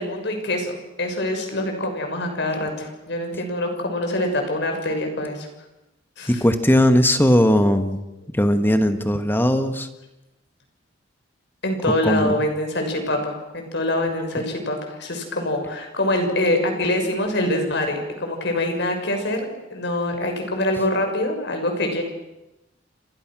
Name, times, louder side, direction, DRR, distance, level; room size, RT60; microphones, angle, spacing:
voice 1, 0.0-5.5 6.2-6.4 11.6-19.4 19.7-22.0, left 1 dB, 65° left, 4 dB, 6.3 m, -25 dB
voice 2, 6.3-8.0 8.3-9.9 12.0-12.4, equal, 10° left, 8 dB, 1.8 m, -18 dB
29.5 x 26.0 x 6.4 m, 0.95 s
head